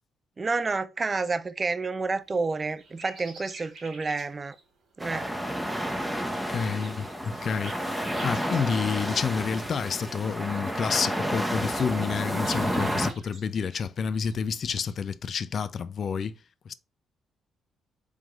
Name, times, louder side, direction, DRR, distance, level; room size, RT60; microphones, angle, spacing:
voice 1, 0.4-4.6 5.0-5.4, right 4 dB, 30° right, 0.5 m, -29 dB
sound 1, 2.0-14.9, right 3 dB, 60° right, 2.3 m, -50 dB
sound 2, 5.0-13.1, equal, 5° right, 0.9 m, -31 dB
voice 2, 6.5-16.3 16.7-16.8, left 6 dB, 50° left, 0.4 m, -29 dB
4.7 x 3.7 x 2.4 m
cardioid pair, 90°, 0 cm